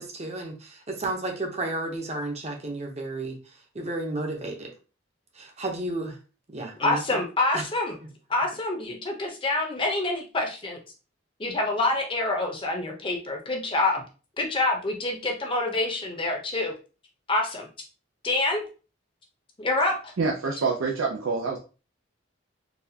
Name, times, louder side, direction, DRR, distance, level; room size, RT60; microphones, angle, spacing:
voice 1, 0.0-3.4 3.7-4.7 5.4-6.2 6.5-7.2 7.5-7.6, right 2 dB, 30° right, 2 dB, 0.7 m, -32 dB
voice 2, 6.8-8.0 8.3-10.8 11.4-14.0 14.4-16.7 17.3-17.7 18.2-18.7 19.6-20.1, left 2 dB, 25° left, 2 dB, 0.7 m, -26 dB
voice 3, 20.2-21.6, right 4 dB, 85° right, -1 dB, 0.6 m, -26 dB
4.0 x 2.3 x 2.7 m, 0.34 s
head